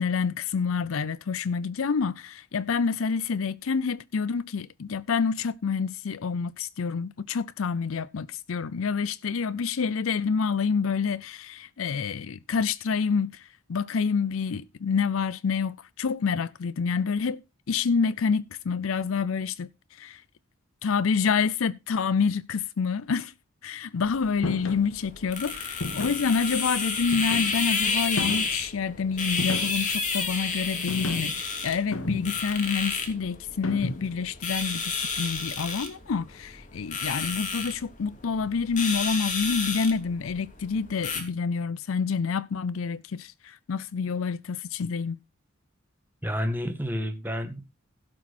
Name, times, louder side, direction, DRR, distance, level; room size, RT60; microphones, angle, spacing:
voice 1, 0.0-17.4 17.7-20.2 20.8-23.3 23.6-45.2, left 5 dB, 70° left, 0.5 m, -28 dB
sound 1, 24.0-41.2, left 4 dB, 40° left, 2.9 m, -31 dB
sound 2, 24.4-24.9 25.8-26.3 27.1-27.7 28.2-28.6 29.4-30.0 30.9-31.4 31.9-32.5 33.6-34.2, left 1 dB, 85° left, 1.4 m, -33 dB
voice 2, 46.2-47.6, equal, 10° right, 1.9 m, -30 dB
16.0 x 6.1 x 4.3 m
head